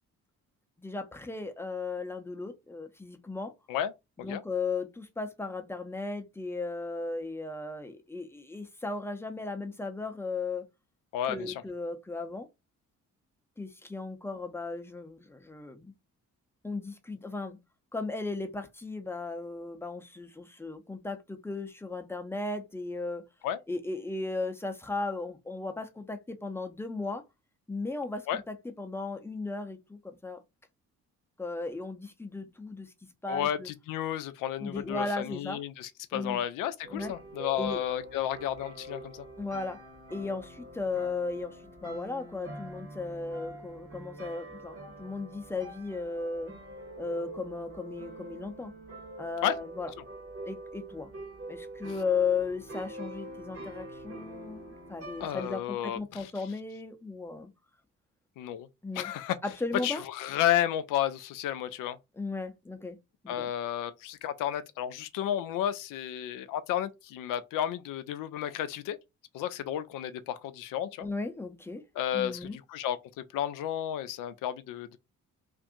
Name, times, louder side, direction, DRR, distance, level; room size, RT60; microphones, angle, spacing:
voice 1, 0.8-3.5 4.2-10.7 11.3-12.5 13.6-15.9 16.6-17.6 17.9-23.2 23.7-27.2 27.7-30.4 31.4-32.9 33.2-33.7 34.6-35.6 36.1-36.4 36.9-37.1 37.6-37.8 39.4-39.8 40.1-46.5 47.0-48.7 49.2-49.9 50.4-51.1 51.5-57.5 58.8-59.1 59.4-60.0 62.1-63.0 63.2-63.5 71.0-71.8 72.1-72.6, left 3 dB, 5° left, 0.7 m, -36 dB
voice 2, 11.1-11.5 23.4-23.6 28.3-28.4 33.3-39.2 49.4-49.6 55.2-56.2 58.4-58.7 59.0-59.4 59.8-62.0 63.3-69.0 69.3-71.1 72.0-75.0, left 11 dB, 50° left, 0.5 m, -32 dB
sound 1, 36.8-55.4, right 1 dB, 35° right, 1.1 m, -45 dB
2.6 x 2.5 x 3.7 m
figure-of-eight pair, 40°, 42 cm